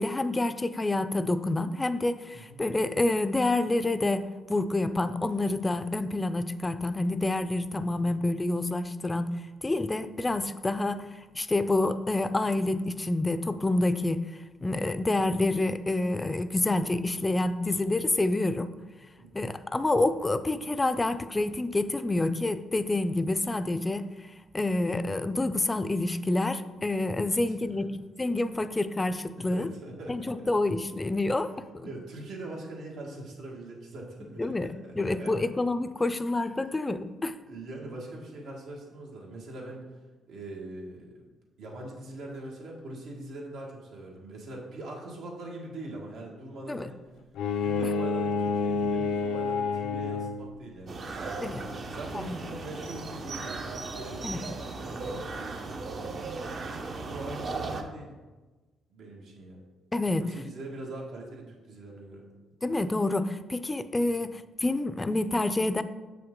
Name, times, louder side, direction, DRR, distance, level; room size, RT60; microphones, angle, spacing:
voice 1, 0.0-9.4 9.6-11.1 11.3-14.3 14.6-18.7 19.3-27.9 28.2-29.7 30.1-31.9 34.4-37.3 46.7-46.9 47.8-47.9 51.4-51.6 52.1-52.3 54.2-54.4 59.9-60.3 62.6-65.8, left 2 dB, 20° left, 12 dB, 0.4 m, -28 dB
voice 2, 2.3-2.6 7.8-8.1 19.2-19.5 27.2-27.4 27.8-27.9 29.4-30.5 31.8-35.5 37.4-39.9 40.3-41.3 41.6-47.0 47.6-51.6 51.8-55.9 56.9-58.1 58.9-59.6 60.2-62.2, right 2 dB, 80° right, -2 dB, 1.6 m, -42 dB
Bowed string instrument, 47.3-50.6, left 4 dB, 80° left, 0.5 m, -29 dB
sound 1, 50.9-57.8, right 3 dB, 50° right, 0.8 m, -37 dB
7.3 x 5.8 x 3.7 m, 1.3 s
cardioid pair, 90°, 0 cm